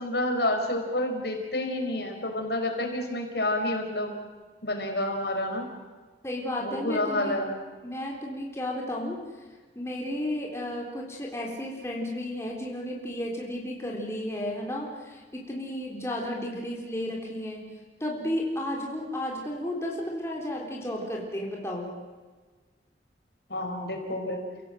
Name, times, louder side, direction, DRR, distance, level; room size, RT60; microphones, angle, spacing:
voice 1, 0.0-4.1 4.6-5.7 6.6-7.6 23.5-24.4, left 1 dB, 65° left, 3 dB, 5.0 m, -29 dB
voice 2, 6.2-7.4 7.8-9.2 9.8-17.7 18.0-21.9, left 1 dB, 15° left, -2 dB, 3.7 m, -33 dB
30.0 x 17.0 x 7.7 m, 1.4 s
head